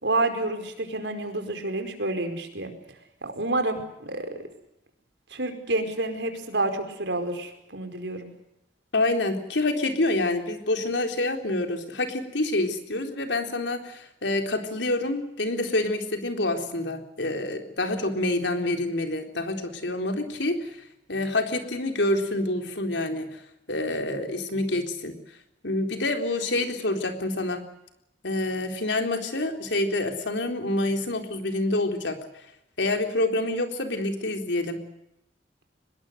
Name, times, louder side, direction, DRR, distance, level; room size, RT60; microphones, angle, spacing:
voice 1, 0.0-2.7 3.2-4.3 5.3-8.3, right 2 dB, 75° right, 7 dB, 5.0 m, -29 dB
voice 2, 8.9-20.7 21.1-23.3 23.7-25.2 25.6-27.6 28.2-32.2 32.8-34.8, left 2 dB, 75° left, 5 dB, 4.0 m, -27 dB
25.0 x 21.0 x 8.0 m, 0.85 s
head